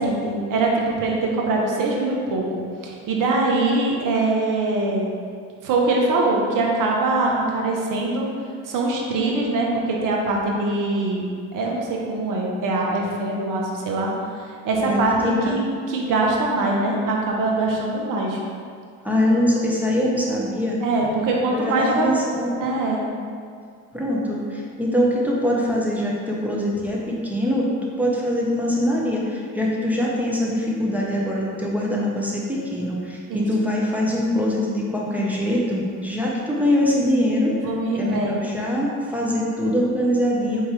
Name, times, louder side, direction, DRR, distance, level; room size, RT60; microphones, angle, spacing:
voice 1, 0.0-2.4 2.8-5.1 5.6-8.3 8.6-14.1 14.6-18.4 20.8-22.1 22.6-23.0 33.3-33.5 37.6-38.3, right 2 dB, 60° right, -1 dB, 1.0 m, -23 dB
voice 2, 14.8-15.7 19.0-20.8 21.5-22.7 23.9-37.6 38.0-40.6, left 1 dB, 5° right, -4 dB, 1.0 m, -23 dB
4.4 x 3.6 x 3.3 m, 2.2 s
hypercardioid pair, 60°, 37 cm